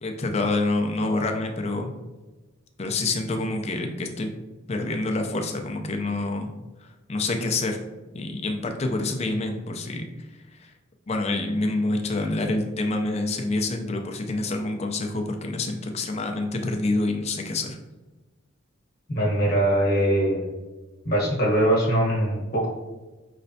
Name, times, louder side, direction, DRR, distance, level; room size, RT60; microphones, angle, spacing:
voice 1, 0.0-1.9 2.8-4.3 4.7-6.5 7.1-7.8 8.1-10.0 10.6-10.7 11.1-17.8, left 2 dB, 30° left, 4 dB, 0.4 m, -27 dB
voice 2, 19.1-20.5 21.0-22.7, right 1 dB, 50° left, -3 dB, 1.1 m, -22 dB
5.1 x 3.2 x 2.7 m, 1.2 s
head